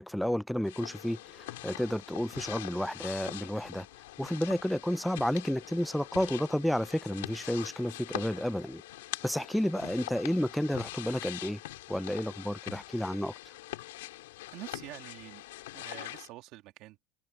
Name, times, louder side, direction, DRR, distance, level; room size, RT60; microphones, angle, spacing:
voice 1, 0.0-3.9 4.2-8.8 9.2-11.6 11.9-13.3, equal, ahead, 0.4 m, -31 dB
sound 1, 0.6-16.3, left 17 dB, 80° left, 2.9 m, -43 dB
voice 2, 14.5-15.4 15.7-17.0, right 17 dB, 45° right, 2.3 m, -47 dB
supercardioid pair, 145°, 0 cm